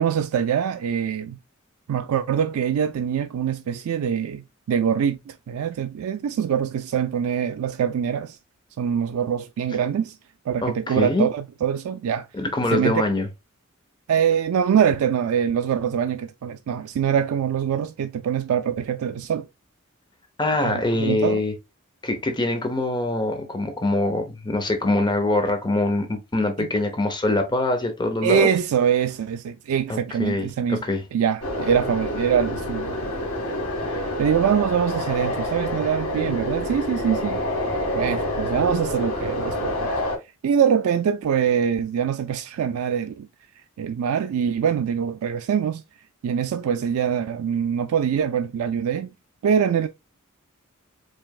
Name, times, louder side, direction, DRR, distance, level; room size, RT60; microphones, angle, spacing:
voice 1, 0.0-1.4 1.9-8.4 8.8-10.1 10.5-12.3 12.7-13.0 14.1-19.5 20.6-21.4 26.6-26.7 28.2-30.8 31.1-33.0 33.8-37.4 37.9-39.9 40.4-43.3 43.8-45.8 46.2-49.1 49.4-49.9, right 8 dB, 80° right, 0.3 m, -24 dB
voice 2, 10.6-11.3 12.3-13.3 20.4-21.5 22.0-28.5 29.9-31.0, left 2 dB, 20° left, 0.6 m, -24 dB
sound 1, 31.4-40.2, left 1 dB, 80° left, 1.8 m, -27 dB
4.7 x 3.2 x 2.3 m
head